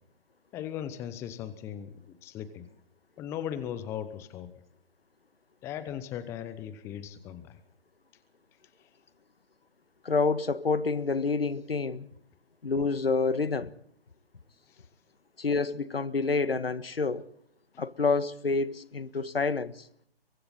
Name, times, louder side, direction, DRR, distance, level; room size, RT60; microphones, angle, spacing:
voice 1, 0.5-2.7 3.2-4.5 5.6-7.6 14.7-14.8, left 10 dB, 10° left, 0.8 m, -38 dB
voice 2, 10.0-12.1 12.6-13.7 15.4-17.3 17.8-19.8, left 4 dB, 70° left, 1.5 m, -28 dB
28.0 x 23.5 x 4.2 m
figure-of-eight pair, 140°, 31 cm